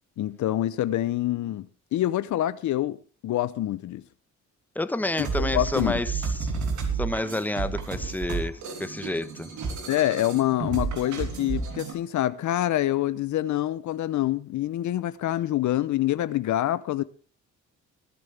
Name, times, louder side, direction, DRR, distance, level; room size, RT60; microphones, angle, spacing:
voice 1, 0.2-3.0 3.2-4.0 5.2-6.0 9.9-17.0, left 13 dB, 70° left, 0.8 m, -26 dB
voice 2, 4.7-6.5 7.0-9.5, left 2 dB, 5° left, 1.0 m, -29 dB
sound 1, 5.0-11.9, right 5 dB, 75° right, 3.4 m, -31 dB
21.0 x 10.5 x 3.4 m
cardioid pair, 90°, 30 cm